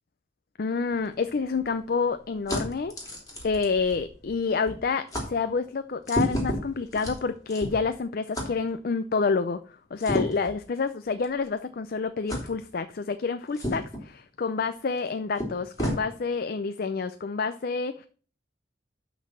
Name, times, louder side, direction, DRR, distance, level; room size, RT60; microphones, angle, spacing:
voice 1, 0.6-2.9 3.4-18.1, left 4 dB, 55° left, 10 dB, 0.5 m, -28 dB
sound 1, 0.9-4.4 4.7-4.8 5.1-5.3 6.0-7.9 8.3-8.5 10.0-10.5 11.2-11.4 12.3-12.5 13.5-14.0 15.0-15.1 15.4-16.0, equal, 20° left, 3.0 m, -32 dB
12.0 x 4.0 x 6.2 m, 0.42 s
head